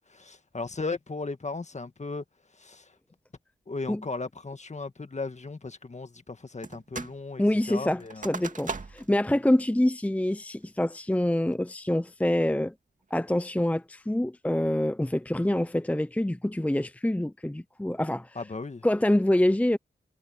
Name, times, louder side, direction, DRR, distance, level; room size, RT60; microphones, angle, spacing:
voice 1, 0.0-2.2 2.6-2.9 3.7-7.4 7.7-8.3 18.4-18.9, left 3 dB, 40° left, 1.8 m, -36 dB
sound 1, 6.6-7.2 7.5-9.2 9.6-9.7 10.2-10.6 11.1-11.5, right 3 dB, 45° right, 2.4 m, -39 dB
voice 2, 7.4-12.7 13.1-18.4 18.8-19.8, left 1 dB, 10° left, 0.7 m, -26 dB
cardioid pair, 40°, 18 cm